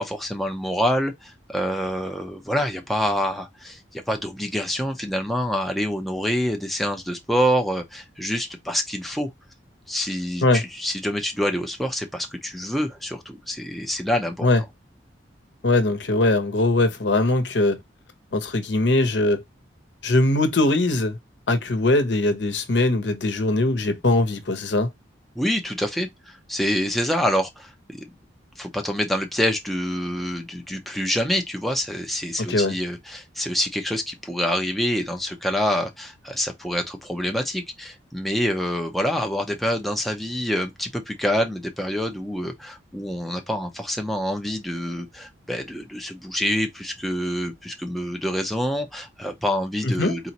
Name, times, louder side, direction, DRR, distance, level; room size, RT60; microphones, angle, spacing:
voice 1, 0.0-9.3 9.9-14.5 25.4-28.0 28.6-50.3, equal, ahead, 0.6 m, -26 dB
voice 2, 15.6-17.8 18.3-19.4 20.0-21.2 21.5-24.9 32.5-32.7 49.8-50.1, left 2 dB, 70° left, 0.9 m, -21 dB
4.1 x 3.0 x 2.9 m
head